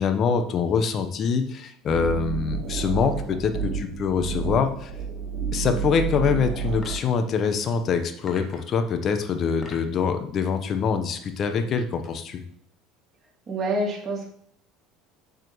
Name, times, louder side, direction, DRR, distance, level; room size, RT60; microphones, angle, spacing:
voice 1, 0.0-4.9 5.5-12.4, left 6 dB, 45° left, 8 dB, 1.0 m, -24 dB
sound 1, 1.9-7.0, right 6 dB, 60° right, 2.4 m, -30 dB
sound 2, 6.8-7.2 8.3-8.8 9.4-10.0, left 2 dB, 30° left, 1.9 m, -43 dB
voice 2, 13.5-14.3, right 1 dB, 40° right, -2 dB, 2.7 m, -27 dB
7.6 x 7.5 x 3.2 m, 0.65 s
hypercardioid pair, 70°, 0 cm